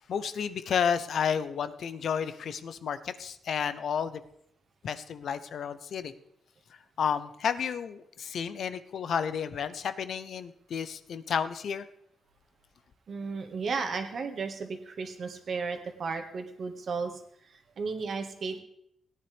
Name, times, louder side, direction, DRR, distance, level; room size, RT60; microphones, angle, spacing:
voice 1, 0.1-4.2 4.8-6.1 7.0-11.8, left 7 dB, 60° left, 12 dB, 0.6 m, -31 dB
voice 2, 13.1-17.2 17.8-18.6, right 4 dB, 50° right, 6 dB, 1.5 m, -34 dB
17.5 x 9.8 x 3.4 m, 0.74 s
cardioid pair, 130°, 0 cm